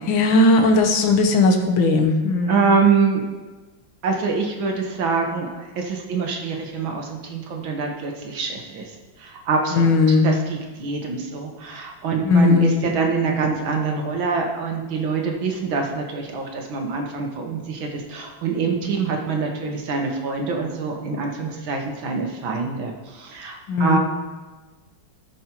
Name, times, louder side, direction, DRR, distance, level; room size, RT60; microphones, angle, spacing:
voice 1, 0.1-2.7 9.7-10.3 12.2-12.8 23.7-24.0, left 3 dB, 90° left, 5 dB, 1.8 m, -17 dB
voice 2, 2.5-3.3 4.0-24.0, right 5 dB, 85° right, 2 dB, 2.0 m, -25 dB
14.5 x 7.3 x 3.0 m, 1.3 s
omnidirectional pair, 2.1 m